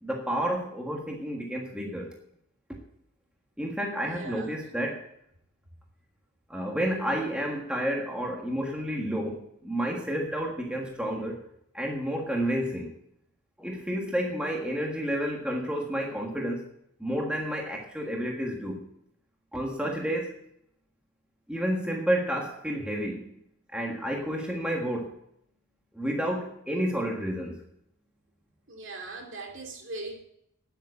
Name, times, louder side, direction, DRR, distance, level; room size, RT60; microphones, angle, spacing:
voice 1, 0.0-2.1 3.6-5.0 6.5-11.4 11.7-12.9 13.6-16.7 17.0-18.8 19.5-20.3 21.5-23.3 23.7-25.1 25.9-27.6, equal, 5° right, 0 dB, 1.6 m, -30 dB
voice 2, 4.0-4.6 28.7-30.2, right 2 dB, 55° right, 2 dB, 2.6 m, -40 dB
9.5 x 8.8 x 8.3 m, 0.75 s
head